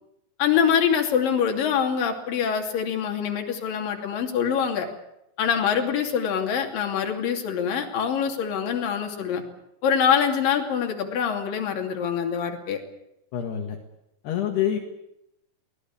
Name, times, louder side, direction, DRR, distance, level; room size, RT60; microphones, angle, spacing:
voice 1, 0.4-4.9 5.4-9.4 9.8-12.8, left 7 dB, 60° left, 3 dB, 4.3 m, -24 dB
voice 2, 13.3-13.8 14.2-14.8, left 10 dB, 75° left, 3 dB, 3.7 m, -26 dB
24.0 x 19.0 x 8.5 m, 0.84 s
omnidirectional pair, 4.8 m